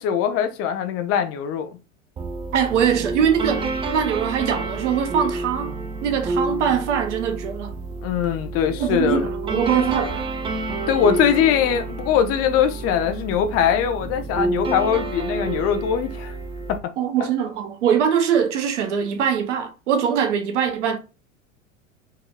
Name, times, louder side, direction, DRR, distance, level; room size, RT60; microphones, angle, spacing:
voice 1, 0.0-1.7 8.0-9.3 10.9-16.3 16.7-16.8, left 8 dB, 35° left, 0.8 m, -21 dB
sound 1, 2.2-16.8, right 3 dB, 15° right, 0.4 m, -29 dB
voice 2, 2.5-5.7 6.0-7.7 8.8-10.2 17.0-21.0, right 8 dB, 65° right, 0.8 m, -22 dB
4.7 x 3.0 x 2.2 m
figure-of-eight pair, 85°, 39 cm